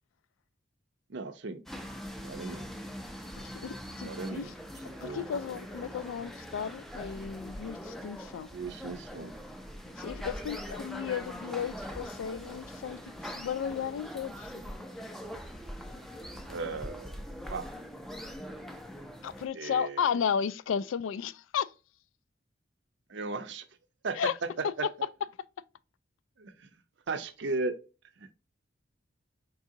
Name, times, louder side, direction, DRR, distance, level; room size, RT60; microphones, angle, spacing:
voice 1, 1.1-1.6 2.2-2.7 4.0-4.5 4.9-5.3 8.3-9.3 16.5-17.7 19.5-20.1 23.1-23.7 24.0-24.9 26.4-26.7 27.1-27.7 28.2-28.3, right 3 dB, 65° right, 0.5 m, -36 dB
sound 1, 1.7-19.5, equal, ahead, 0.4 m, -42 dB
voice 2, 3.4-4.5 5.0-8.5 10.0-14.6 19.2-21.7 24.2-24.3, left 7 dB, 90° left, 0.3 m, -34 dB
4.7 x 3.7 x 2.6 m
head